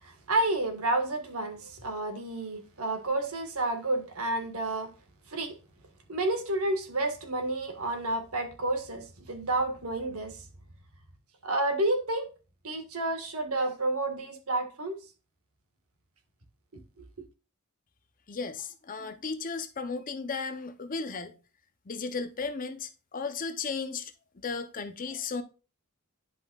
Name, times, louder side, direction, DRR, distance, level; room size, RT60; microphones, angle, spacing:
voice 1, 0.0-4.9 5.3-5.5 6.1-10.4 11.4-12.3 12.6-15.0 17.0-17.1, right 2 dB, 75° right, 1.6 m, -30 dB
voice 2, 18.3-21.3 21.9-24.1 24.4-25.4, left 4 dB, 40° left, 0.7 m, -35 dB
10.5 x 5.3 x 2.4 m
head